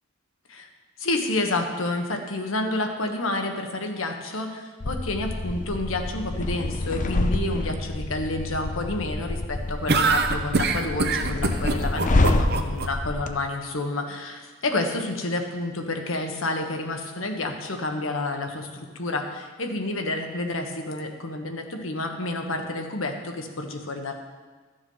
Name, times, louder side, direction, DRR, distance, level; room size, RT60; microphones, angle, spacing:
voice 1, 1.0-18.7 18.9-24.1, left 2 dB, 80° left, 4 dB, 1.3 m, -29 dB
sound 1, 4.8-13.3, left 2 dB, 40° left, 0.6 m, -27 dB
sound 2, 9.9-12.9, right 4 dB, 55° right, 0.8 m, -23 dB
13.0 x 7.1 x 5.5 m, 1.4 s
head